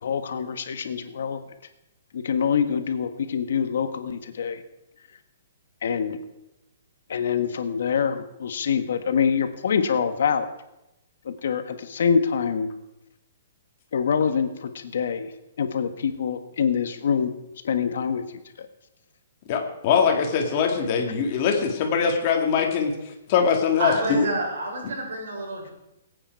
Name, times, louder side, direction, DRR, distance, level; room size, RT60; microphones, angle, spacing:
voice 1, 0.0-1.4 2.1-4.6 5.8-6.2 7.1-10.5 11.2-12.7 13.9-15.3 15.6-17.3 17.6-18.2, left 7 dB, 65° left, 8 dB, 1.5 m, -25 dB
voice 2, 19.5-22.9 23.3-24.3, left 6 dB, 35° left, 2 dB, 2.2 m, -22 dB
voice 3, 23.8-25.7, right 2 dB, 80° right, 1 dB, 4.7 m, -28 dB
21.0 x 8.9 x 4.7 m, 0.89 s
hypercardioid pair, 170°, 0 cm